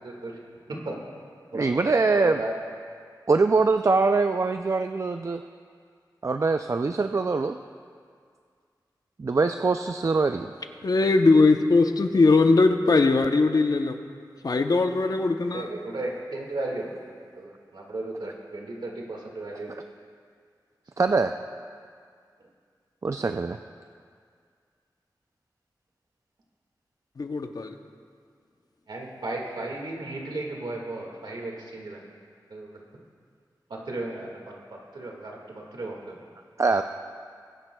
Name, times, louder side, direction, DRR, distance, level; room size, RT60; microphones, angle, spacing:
voice 1, 0.0-0.4 0.7-1.0 1.5-2.5 15.5-16.9 17.3-19.8 22.4-22.5 28.9-32.0 32.5-32.8 33.7-36.2, right 2 dB, 75° right, -1 dB, 1.8 m, -35 dB
voice 2, 1.5-2.4 3.3-5.4 6.2-7.6 9.2-10.5 19.7-19.8 21.0-21.4 23.0-23.6 36.6-36.8, right 4 dB, 40° right, 7 dB, 0.3 m, -23 dB
voice 3, 10.8-14.0 14.4-15.7 27.2-27.7, left 3 dB, 55° left, 6 dB, 0.7 m, -20 dB
20.5 x 10.5 x 2.3 m, 2.1 s
wide cardioid pair, 70°, 8 cm